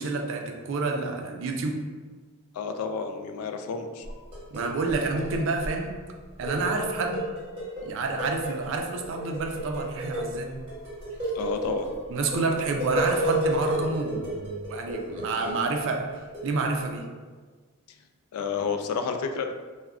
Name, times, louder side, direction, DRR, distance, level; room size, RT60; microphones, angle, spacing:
voice 1, 0.0-1.8 4.5-5.9 6.4-7.2 7.8-10.5 12.1-16.1 16.4-17.1, right 3 dB, 60° right, 3 dB, 0.4 m, -29 dB
voice 2, 2.5-4.1 11.3-11.9 18.3-19.5, left 5 dB, 85° left, 10 dB, 0.3 m, -30 dB
sound 1, 4.0-6.0 6.2-7.9 8.2-15.9 16.3-16.5, right 1 dB, 25° right, 1.1 m, -32 dB
2.3 x 2.1 x 3.5 m, 1.4 s
head